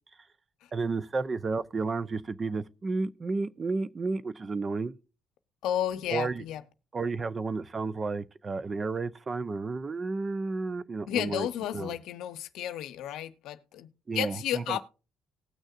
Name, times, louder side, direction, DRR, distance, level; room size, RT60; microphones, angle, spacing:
voice 1, 0.7-4.9 6.1-6.4 6.9-12.0 14.1-14.8, right 3 dB, 35° right, 0.6 m, -32 dB
voice 2, 5.6-6.6 11.1-13.9 14.1-14.8, left 11 dB, 75° left, 0.7 m, -32 dB
19.0 x 6.4 x 2.5 m
supercardioid pair, 70°, 0 cm